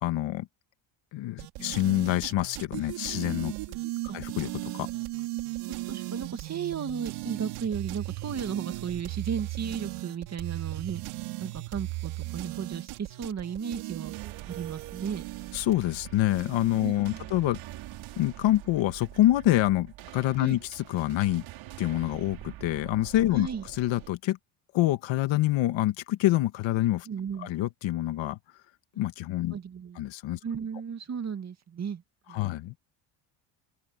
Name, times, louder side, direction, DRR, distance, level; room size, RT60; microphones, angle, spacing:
voice 1, 0.0-0.5 1.1-3.5 4.1-4.9 15.5-17.6 18.2-21.4 21.8-23.5 23.8-24.4 24.7-27.1 27.4-28.4 29.0-29.5 30.0-30.4 32.3-32.7, left 15 dB, 65° left, 1.8 m, -26 dB
sound 1, 1.4-18.6, right 19 dB, 85° right, 4.6 m, -37 dB
voice 2, 5.3-11.0 11.4-14.1 14.5-15.2 16.8-17.3 20.4-20.6 23.3-23.7 27.1-27.5 29.5-30.0 30.4-32.0 32.3-32.5, right 7 dB, 30° right, 2.1 m, -35 dB
sound 2, 13.9-24.1, right 15 dB, 70° right, 3.6 m, -45 dB
open air
cardioid pair, 130°, 49 cm